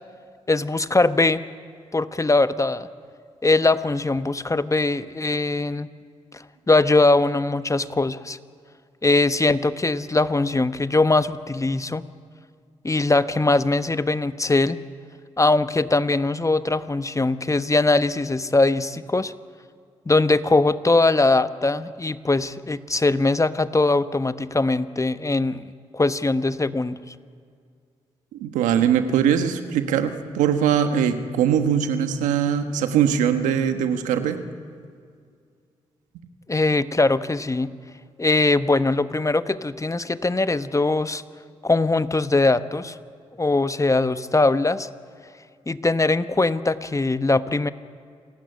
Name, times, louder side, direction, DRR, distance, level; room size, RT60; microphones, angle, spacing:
voice 1, 0.5-1.4 1.9-2.9 3.4-5.9 6.7-8.4 9.0-12.0 12.8-14.8 15.4-19.3 20.1-25.6 25.9-27.1 36.5-37.7 38.2-41.2 41.6-43.0 43.4-44.9 45.7-47.7, left 2 dB, 25° left, 12 dB, 1.1 m, -21 dB
voice 2, 28.3-34.4, right 8 dB, 90° right, 8 dB, 1.3 m, -21 dB
27.5 x 15.5 x 9.7 m, 2.2 s
supercardioid pair, 45°, 13 cm